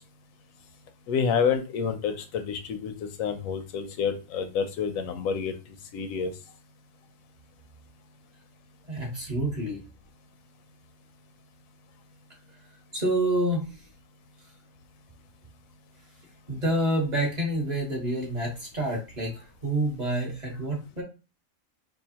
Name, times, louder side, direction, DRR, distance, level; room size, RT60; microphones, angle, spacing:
voice 1, 1.1-5.5 5.9-6.3, left 6 dB, 90° left, 8 dB, 1.0 m, -28 dB
voice 2, 8.9-9.8 12.9-13.7 16.5-21.0, right 1 dB, 35° right, -2 dB, 1.3 m, -28 dB
4.7 x 2.3 x 2.9 m, 0.31 s
omnidirectional pair, 1.4 m